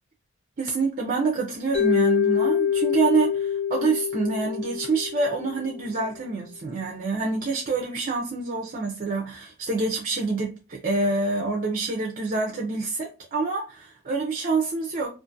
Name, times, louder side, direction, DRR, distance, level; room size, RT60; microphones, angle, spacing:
voice 1, 0.6-15.1, right 3 dB, 40° right, 0.5 m, -26 dB
Mallet percussion, 1.7-5.9, left 8 dB, 40° left, 1.0 m, -25 dB
2.5 x 2.4 x 2.5 m
head